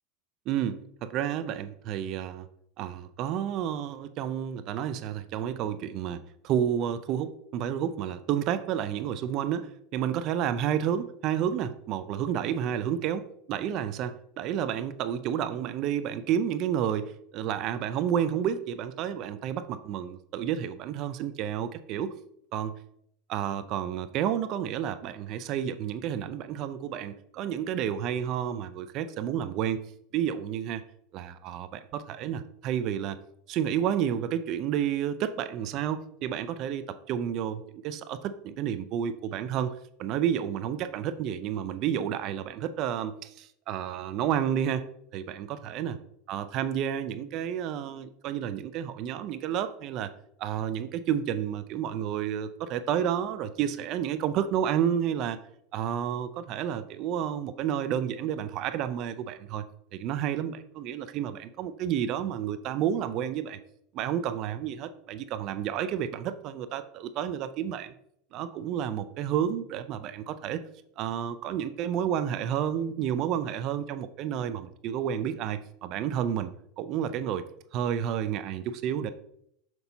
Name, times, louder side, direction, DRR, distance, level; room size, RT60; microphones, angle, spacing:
voice 1, 0.5-2.5 2.8-22.1 22.5-22.8 23.3-29.8 30.1-30.8 31.1-33.2 33.5-39.7 40.0-44.8 45.1-46.0 46.3-50.1 50.4-55.4 55.7-63.6 63.9-67.9 68.3-70.6 71.0-77.4 77.7-79.1, right 9 dB, 50° right, 12 dB, 0.5 m, -30 dB
6.6 x 6.0 x 2.8 m, 0.71 s
hypercardioid pair, 105°, 0 cm